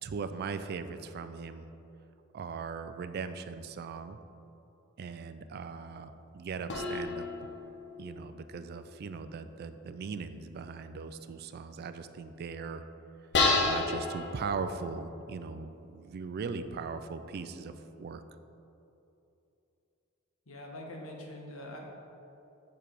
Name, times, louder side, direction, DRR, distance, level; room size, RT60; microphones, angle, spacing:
voice 1, 0.0-1.7 2.3-4.2 5.0-7.3 8.0-12.8 13.6-18.2, right 5 dB, 50° right, 10 dB, 0.3 m, -39 dB
sound 1, 6.7-8.8 13.3-15.2, left 3 dB, 60° left, 0.8 m, -31 dB
voice 2, 20.5-21.8, left 1 dB, 80° left, 0 dB, 1.1 m, -44 dB
5.9 x 4.8 x 5.1 m, 2.9 s
head